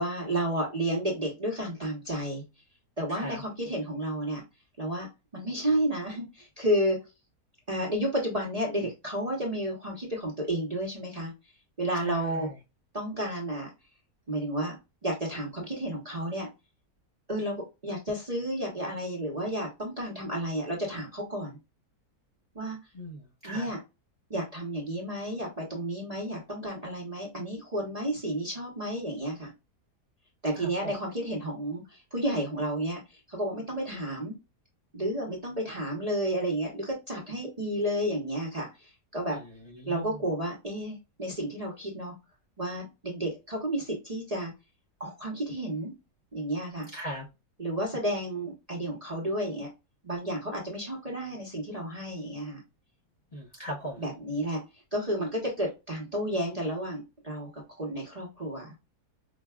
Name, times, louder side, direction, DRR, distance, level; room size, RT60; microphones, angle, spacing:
voice 1, 0.0-2.4 3.0-4.4 4.8-5.1 5.3-7.0 7.7-11.3 11.8-12.5 12.9-13.7 14.3-14.8 15.0-16.5 17.3-21.6 22.5-22.8 23.4-23.8 24.3-29.5 30.4-34.3 34.9-39.4 39.9-42.1 42.6-44.5 45.0-45.9 46.3-46.9 47.6-49.7 50.0-52.6 54.0-54.6 54.9-58.7, right 1 dB, 30° right, 0.8 m, -31 dB
voice 2, 3.1-3.4 11.9-12.6 22.9-23.7 30.5-30.9 39.3-40.2 46.9-47.2 53.3-54.0, right 1 dB, 30° left, 0.9 m, -39 dB
5.0 x 2.3 x 2.2 m
omnidirectional pair, 1.7 m